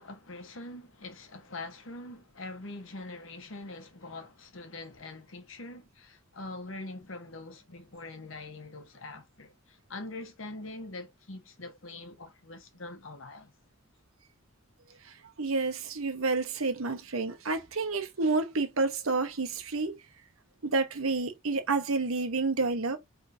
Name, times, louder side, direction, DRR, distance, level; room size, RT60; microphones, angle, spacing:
voice 1, 0.0-13.5, left 2 dB, 70° left, 1.2 m, -43 dB
voice 2, 15.4-20.0 20.6-23.0, right 3 dB, 90° right, 1.1 m, -29 dB
4.9 x 3.6 x 2.7 m
head